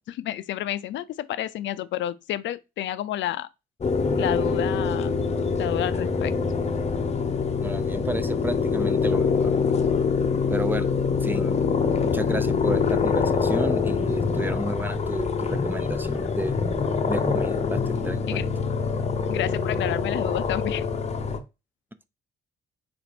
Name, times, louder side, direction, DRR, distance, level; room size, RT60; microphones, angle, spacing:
voice 1, 0.0-3.5 4.2-5.1 5.6-6.3 18.3-18.4 19.3-20.9, left 12 dB, 70° left, 0.4 m, -30 dB
sound 1, 3.8-21.4, left 5 dB, 35° left, 0.7 m, -25 dB
voice 2, 7.6-9.9 10.5-11.6 12.0-16.5 17.1-18.5, right 1 dB, 10° right, 0.4 m, -32 dB
4.2 x 2.5 x 4.1 m
cardioid pair, 90°, 20 cm